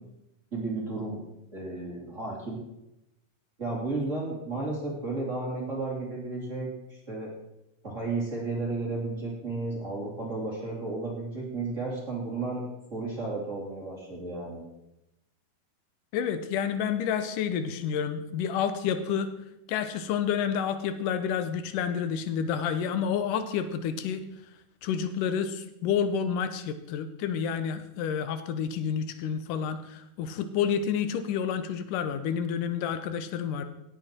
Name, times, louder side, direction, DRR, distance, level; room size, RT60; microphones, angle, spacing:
voice 1, 0.5-1.2 1.5-2.6 3.6-7.3 7.8-12.6 12.9-14.6, right 3 dB, 25° right, -2 dB, 2.5 m, -33 dB
voice 2, 16.1-19.3 19.7-24.2 24.8-33.6, left 7 dB, 80° left, 10 dB, 2.5 m, -29 dB
17.0 x 8.9 x 4.4 m, 0.87 s
omnidirectional pair, 3.8 m